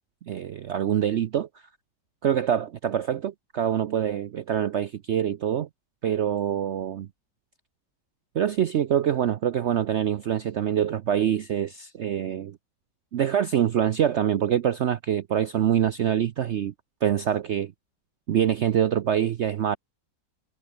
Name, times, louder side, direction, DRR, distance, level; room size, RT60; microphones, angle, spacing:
voice 1, 0.3-1.5 2.2-5.7 6.0-7.1 8.3-12.6 13.1-16.7 17.0-17.7 18.3-19.8, right 9 dB, 80° right, 0.6 m, -25 dB
omnidirectional pair, 1.9 m